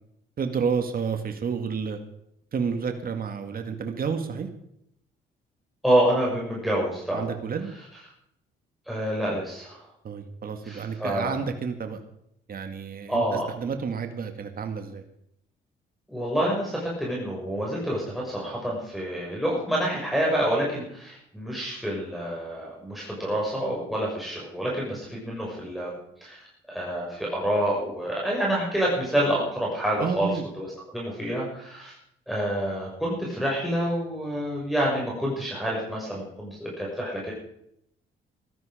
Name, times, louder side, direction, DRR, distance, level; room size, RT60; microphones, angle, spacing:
voice 1, 0.4-2.0 2.5-4.5 7.1-7.7 10.0-12.0 12.5-15.0 30.0-30.4, right 6 dB, 50° right, 6 dB, 2.0 m, -30 dB
voice 2, 5.8-7.3 8.9-9.8 10.6-11.4 13.1-13.5 16.1-30.3 30.6-30.7 30.9-32.0 32.3-37.3, right 1 dB, ahead, -4 dB, 6.1 m, -27 dB
17.0 x 13.5 x 5.1 m, 0.74 s
cardioid pair, 90°, 20 cm